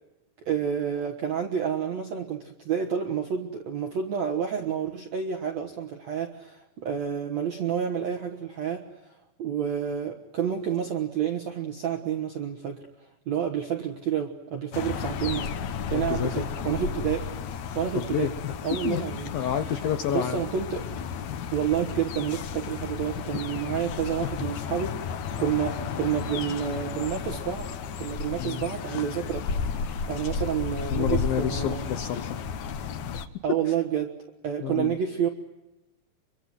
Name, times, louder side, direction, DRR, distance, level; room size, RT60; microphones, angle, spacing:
voice 1, 0.4-9.1 9.4-12.9 13.3-15.5 15.9-17.3 17.8-18.3 18.6-19.3 20.1-20.9 21.5-27.7 28.0-29.5 29.8-31.8 33.4-34.2 34.4-35.3, right 8 dB, 65° right, 3 dB, 1.7 m, -29 dB
sound 1, 14.7-33.3, left 6 dB, 90° left, 1.6 m, -33 dB
voice 2, 15.9-16.5 18.0-20.4 21.3-21.5 24.2-24.3 28.4-28.6 30.9-32.4 33.1-33.2 33.7-33.8 34.6-35.0, left 10 dB, 70° left, 9 dB, 2.3 m, -30 dB
26.0 x 23.5 x 7.8 m, 0.98 s
omnidirectional pair, 5.1 m